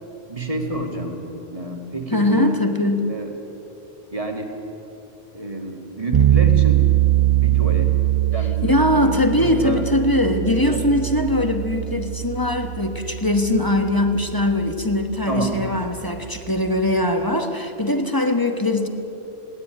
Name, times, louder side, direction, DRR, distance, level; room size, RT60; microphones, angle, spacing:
voice 1, 0.3-1.1 1.5-2.5 3.1-3.3 4.1-4.5 5.3-6.8 7.4-7.9 8.3-9.8 10.6-10.8 15.3-15.6, right 2 dB, 35° right, 2 dB, 2.5 m, -29 dB
voice 2, 2.1-3.1 8.6-18.9, left 1 dB, 20° left, 5 dB, 1.3 m, -21 dB
sound 1, 6.1-17.0, right 13 dB, 50° right, 0.5 m, -22 dB
20.0 x 17.0 x 9.2 m, 3.0 s
omnidirectional pair, 1.1 m